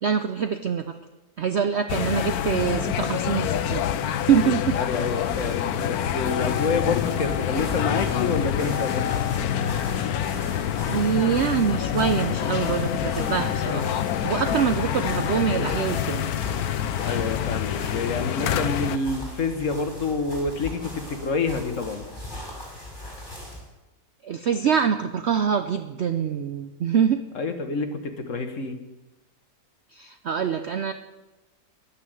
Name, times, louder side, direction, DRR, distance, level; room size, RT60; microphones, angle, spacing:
voice 1, 0.0-1.0 1.4-3.8 4.2-4.8 10.9-13.9 14.2-16.3 24.2-27.2 29.9-30.9, right 7 dB, 65° right, 9 dB, 0.7 m, -24 dB
sound 1, 1.9-19.0, left 9 dB, 70° left, 1.2 m, -26 dB
sound 2, 4.6-23.7, left 1 dB, 25° left, 6.1 m, -39 dB
voice 2, 4.7-9.1 17.0-22.0 27.3-28.8, left 4 dB, 50° left, 7 dB, 1.5 m, -28 dB
11.5 x 9.6 x 7.8 m, 1.1 s
omnidirectional pair, 1.8 m